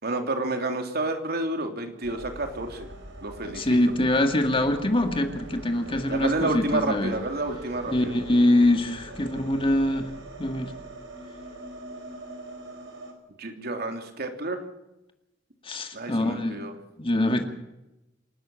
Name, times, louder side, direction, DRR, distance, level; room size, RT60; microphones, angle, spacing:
voice 1, 0.0-2.9 3.2-3.8 6.1-8.1 13.4-14.7 15.9-16.7, right 2 dB, 55° right, 5 dB, 3.1 m, -30 dB
sound 1, 2.0-13.1, right 1 dB, 75° right, 5.0 m, -42 dB
voice 2, 3.6-7.1 7.9-10.1 10.4-10.7 15.6-16.6 17.0-17.4, left 1 dB, 30° left, 5 dB, 2.1 m, -24 dB
28.0 x 12.5 x 7.7 m, 0.95 s
head